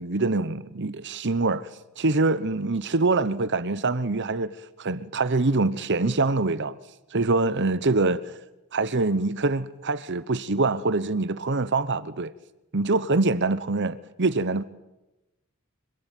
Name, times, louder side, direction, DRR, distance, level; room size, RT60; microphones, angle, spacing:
voice 1, 0.0-1.7 2.0-6.8 7.1-8.4 8.7-12.3 12.7-14.6, right 3 dB, 55° right, 1.0 m, -24 dB
26.0 x 21.5 x 9.2 m
head